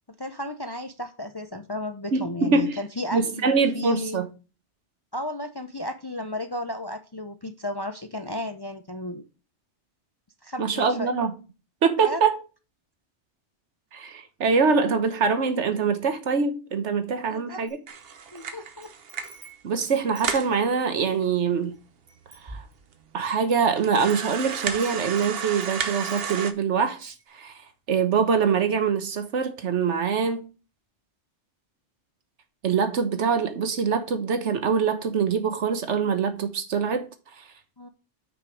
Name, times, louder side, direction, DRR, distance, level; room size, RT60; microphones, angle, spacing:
voice 1, 0.2-4.2 5.1-9.3 10.4-11.1 12.0-12.2 17.3-17.6 18.3-18.9 37.8-37.9, left 1 dB, 30° left, 0.5 m, -34 dB
voice 2, 2.1-2.8 3.1-4.3 10.6-11.3 11.8-12.3 13.9-17.8 19.6-21.7 22.4-22.6 23.1-27.5 27.9-30.5 32.6-37.1 37.4-37.5, right 5 dB, 75° right, 1.4 m, -24 dB
Wind chime, 17.7-18.5 18.8-21.2 21.7-21.8 22.1-23.2 23.7-26.6 27.0-27.2, right 2 dB, 30° right, 1.8 m, -48 dB
sound 1, 17.9-19.5 19.8-19.9 20.2-20.5 21.2-21.3 21.6-21.7 22.3-22.4 22.9-23.0 23.8-26.5, right 6 dB, 60° right, 1.0 m, -32 dB
6.0 x 5.2 x 6.1 m
omnidirectional pair, 1.2 m